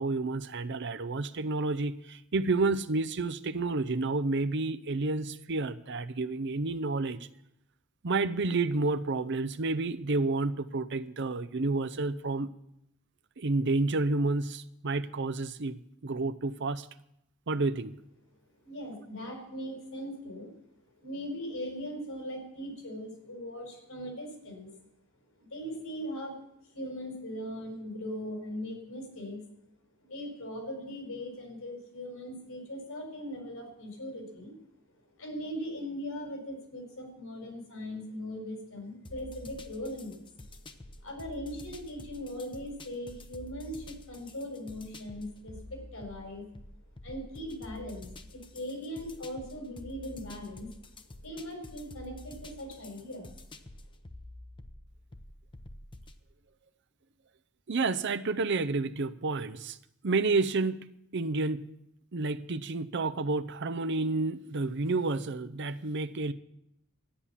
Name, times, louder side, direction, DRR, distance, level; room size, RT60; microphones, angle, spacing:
voice 1, 0.0-7.3 8.0-12.5 13.4-16.9 17.5-17.9 57.7-59.8 60.0-60.9 61.1-61.7 62.1-66.3, right 3 dB, 55° right, 13 dB, 0.7 m, -30 dB
voice 2, 18.6-20.5 21.0-24.8 25.4-26.4 26.6-29.4 30.0-34.5 35.2-40.2 41.0-46.5 47.0-50.7 51.2-53.3, equal, 80° left, 2 dB, 5.4 m, -40 dB
sound 1, 39.0-56.2, left 2 dB, 25° left, 0.8 m, -49 dB
13.0 x 10.0 x 7.2 m, 0.79 s
head